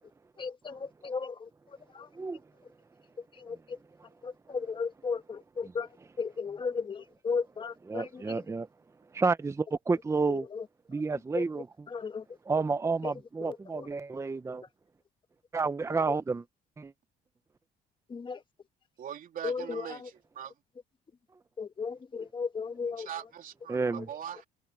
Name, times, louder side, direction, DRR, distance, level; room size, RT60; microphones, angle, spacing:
voice 1, 0.4-2.1 3.2-3.8 4.2-5.9 6.2-8.4 10.3-10.7 10.9-12.4 13.0-13.1 13.4-13.9 15.9-16.1 18.1-18.4 19.4-20.1 21.6-23.1 23.9-24.1, left 5 dB, 30° left, 1.6 m, -36 dB
voice 2, 7.9-8.7 9.1-10.5 10.9-11.6 12.5-14.6 15.5-16.4 16.8-16.9 23.7-24.1, right 4 dB, 15° right, 0.8 m, -30 dB
voice 3, 19.0-20.0 20.3-20.5 23.0-24.5, right 9 dB, 55° right, 3.2 m, -41 dB
cardioid pair, 110°, 17 cm